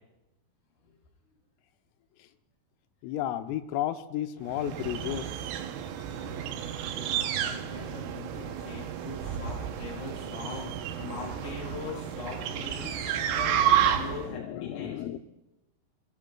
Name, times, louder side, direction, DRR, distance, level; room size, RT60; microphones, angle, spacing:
voice 1, 3.0-5.3 7.0-7.1 8.4-8.8 9.2-9.7 10.5-10.6 12.3-15.2, left 12 dB, 85° left, 8 dB, 3.4 m, -35 dB
sound 1, 4.5-14.3, right 10 dB, 80° right, 3.4 m, -31 dB
voice 2, 6.9-12.9 13.3-15.0, left 4 dB, 50° left, -3 dB, 3.3 m, -41 dB
25.5 x 17.5 x 2.3 m, 0.95 s
omnidirectional pair, 5.9 m